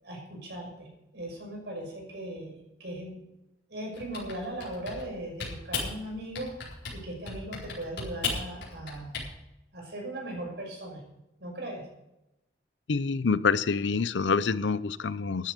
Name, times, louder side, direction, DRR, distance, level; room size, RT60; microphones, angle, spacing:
voice 1, 0.0-3.2 3.7-6.5 6.9-9.2 9.7-11.0 11.4-11.9, right 1 dB, 70° right, 1 dB, 5.8 m, -38 dB
Typing, 3.9-5.1 5.4-5.9 6.3-7.0 7.3-9.3, left 4 dB, 70° left, 4.4 m, -35 dB
voice 2, 12.9-15.5, left 5 dB, 85° left, 17 dB, 0.6 m, -27 dB
13.5 x 10.5 x 5.3 m, 0.90 s
head